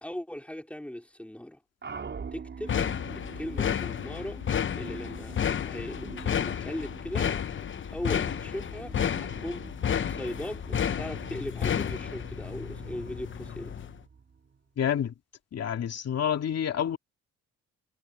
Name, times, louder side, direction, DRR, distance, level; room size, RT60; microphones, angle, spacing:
voice 1, 0.0-1.6 2.3-2.8 3.4-4.4 4.8-7.3 7.9-9.7 10.1-13.9, left 1 dB, 5° left, 3.4 m, -39 dB
sound 1, 1.8-14.7, right 5 dB, 40° right, 5.0 m, -46 dB
sound 2, 2.7-14.0, left 8 dB, 40° left, 0.9 m, -31 dB
voice 2, 14.8-15.1 15.5-17.0, left 9 dB, 55° left, 2.5 m, -28 dB
cardioid pair, 90°, 30 cm